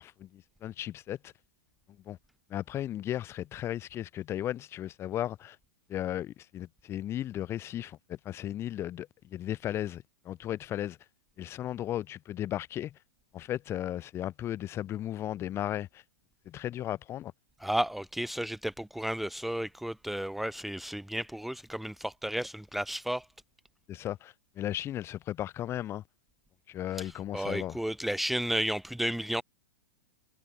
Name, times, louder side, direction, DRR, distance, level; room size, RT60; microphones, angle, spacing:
voice 1, 0.0-1.3 2.0-2.2 2.5-5.6 5.9-11.0 11.4-13.0 13.3-16.0 16.4-17.3 23.9-26.0 26.7-27.8, left 12 dB, 25° left, 2.9 m, -35 dB
voice 2, 17.6-23.2 27.0-29.4, right 1 dB, ahead, 1.5 m, -33 dB
hypercardioid pair, 150°, 11 cm